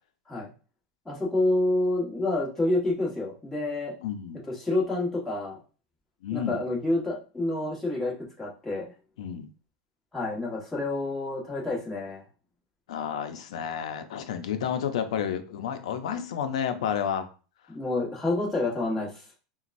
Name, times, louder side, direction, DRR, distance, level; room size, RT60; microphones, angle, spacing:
voice 1, 1.0-3.9 4.4-5.6 6.3-8.8 10.1-12.2 17.7-19.2, left 2 dB, 10° left, -4 dB, 1.4 m, -28 dB
voice 2, 4.0-4.4 6.2-6.6 9.2-9.5 12.9-17.3, left 8 dB, 85° left, 8 dB, 0.6 m, -31 dB
3.9 x 2.3 x 2.6 m, 0.35 s
supercardioid pair, 130°, 3 cm